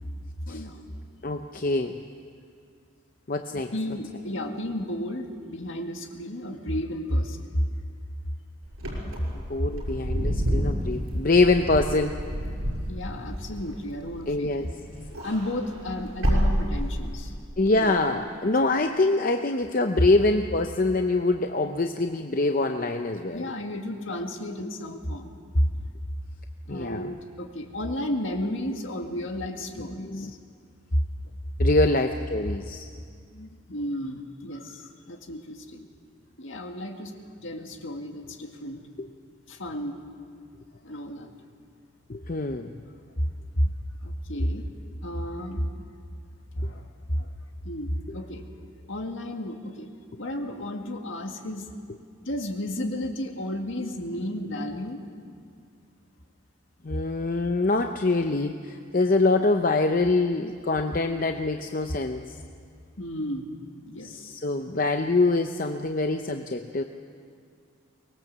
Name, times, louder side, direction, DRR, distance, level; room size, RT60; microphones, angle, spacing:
voice 1, 0.5-0.8 3.5-7.6 12.6-14.7 15.2-17.3 17.7-17.9 23.3-25.7 26.7-30.4 30.9-31.0 33.7-35.9 36.4-37.1 37.4-38.8 39.5-40.0 40.8-41.3 43.2-43.7 44.0-44.7 45.0-45.7 46.5-47.3 47.6-48.4 48.9-49.9 50.2-51.6 52.2-55.0 63.0-63.5 63.8-64.1, equal, 65° left, 4 dB, 2.0 m, -32 dB
voice 2, 1.2-1.9 3.3-3.7 9.5-12.2 14.3-14.7 17.6-23.5 26.7-27.1 29.9-30.3 31.6-32.9 33.4-33.5 39.0-39.1 42.1-42.7 56.8-62.3 64.0-66.8, left 2 dB, 40° left, 6 dB, 0.7 m, -25 dB
Wind / Car, 8.7-14.6 14.9-17.3, equal, 75° right, 6.1 m, -29 dB
24.0 x 20.0 x 7.4 m, 2.3 s
head